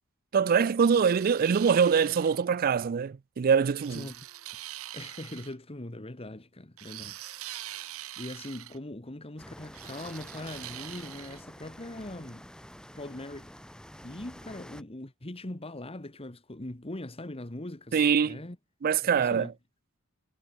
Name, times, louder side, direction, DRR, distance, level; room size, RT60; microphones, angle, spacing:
voice 1, 0.3-4.1 17.9-18.4 18.8-19.5, right 6 dB, 45° right, 0.4 m, -24 dB
sound 1, 0.8-2.4 3.8-5.5 6.8-8.8 9.7-11.4, right 14 dB, 80° right, 1.0 m, -43 dB
voice 2, 3.9-4.2 4.9-12.4 12.9-13.5 14.0-18.6 19.2-19.5, left 1 dB, 25° left, 1.5 m, -41 dB
sound 2, 9.4-14.8, equal, 5° left, 1.4 m, -48 dB
head